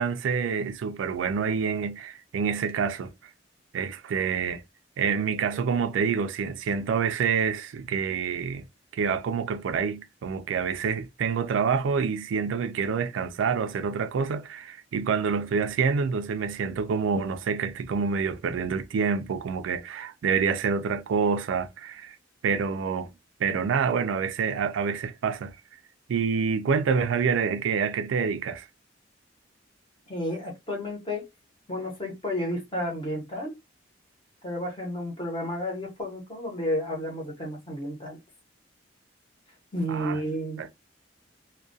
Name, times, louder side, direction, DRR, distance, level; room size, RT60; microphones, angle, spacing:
voice 1, 0.0-3.1 3.7-4.6 5.0-8.6 8.9-22.2 22.4-23.1 23.4-25.6 26.1-28.7 39.9-40.2 40.6-40.7, right 6 dB, 80° right, 0.3 m, -27 dB
voice 2, 30.1-31.2 31.7-33.5 34.4-38.2 39.7-40.6, equal, 25° left, 0.9 m, -31 dB
2.3 x 2.2 x 2.5 m
head